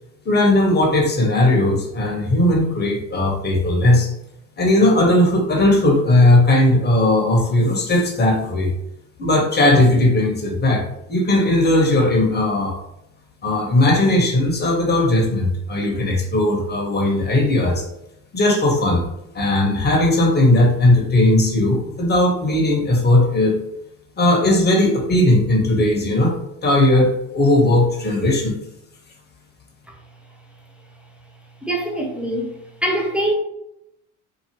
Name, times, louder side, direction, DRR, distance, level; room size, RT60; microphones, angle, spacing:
voice 1, 0.2-4.1 4.6-8.7 9.2-10.8 11.1-12.8 13.4-17.8 18.3-19.0 19.3-23.6 24.2-26.3 26.6-28.5, left 1 dB, 25° left, -1 dB, 1.1 m, -17 dB
voice 2, 31.6-32.5 32.8-33.3, right 1 dB, 5° right, -1 dB, 0.7 m, -23 dB
2.9 x 2.4 x 2.9 m, 0.81 s
hypercardioid pair, 75°, 38 cm